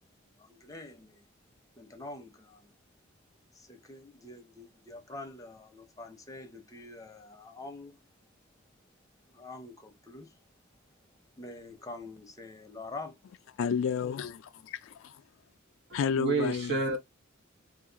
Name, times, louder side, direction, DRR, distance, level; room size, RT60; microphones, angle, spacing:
voice 1, 0.4-1.3 1.8-2.7 3.5-8.0 9.3-10.4 11.4-13.2 14.0-14.1, left 2 dB, 15° left, 0.6 m, -46 dB
voice 2, 13.6-15.2 15.9-16.8, left 7 dB, 65° left, 0.3 m, -31 dB
voice 3, 15.9-17.0, right 3 dB, 55° right, 0.9 m, -30 dB
2.4 x 2.3 x 3.8 m
head